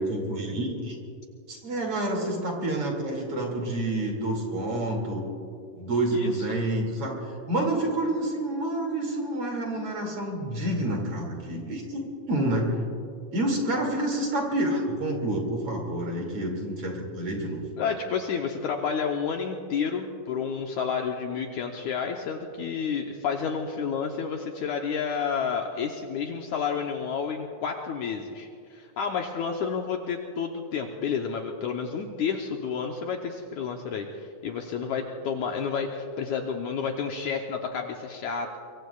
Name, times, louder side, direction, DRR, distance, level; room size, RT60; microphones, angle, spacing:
voice 1, 0.1-1.0 1.5-5.3 5.8-12.0 12.3-12.8 13.3-17.6, right 1 dB, 45° right, 0 dB, 3.2 m, -28 dB
voice 2, 6.1-6.6 17.8-38.6, left 6 dB, 70° left, 2 dB, 1.9 m, -30 dB
24.0 x 23.5 x 2.4 m, 2.4 s
omnidirectional pair, 4.1 m